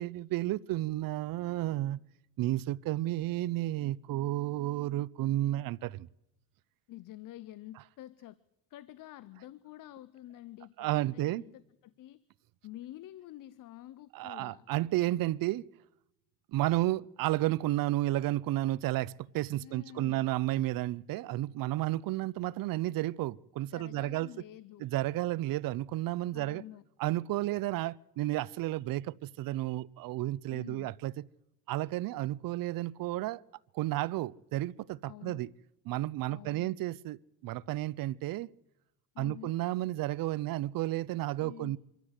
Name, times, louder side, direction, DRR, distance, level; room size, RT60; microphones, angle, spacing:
voice 1, 0.0-2.0 2.4-6.1 10.8-11.4 14.1-15.7 16.5-24.3 24.8-26.6 27.0-31.3 31.7-33.4 33.7-35.5 35.9-38.5 39.2-41.8, right 16 dB, 65° right, 0.6 m, -32 dB
voice 2, 6.9-8.4 8.7-12.2 12.6-14.7 19.6-20.3 23.7-24.9 26.3-26.8 30.5-31.0 35.0-35.5 36.3-36.8 39.1-39.6 41.4-41.8, left 14 dB, 60° left, 0.7 m, -48 dB
24.5 x 13.5 x 8.0 m
cardioid pair, 120°, 37 cm